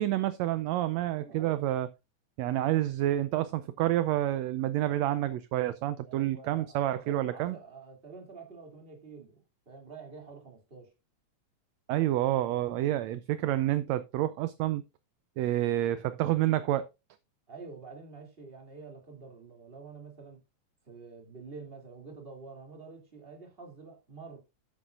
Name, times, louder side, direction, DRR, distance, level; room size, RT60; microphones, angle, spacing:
voice 1, 0.0-1.9 2.4-7.6 11.9-14.8 15.4-16.9, right 14 dB, 80° right, 1.6 m, -28 dB
voice 2, 1.1-1.6 6.0-10.9 17.5-20.4 20.8-24.4, right 4 dB, 20° right, 2.5 m, -48 dB
13.0 x 8.2 x 2.4 m
omnidirectional pair, 3.5 m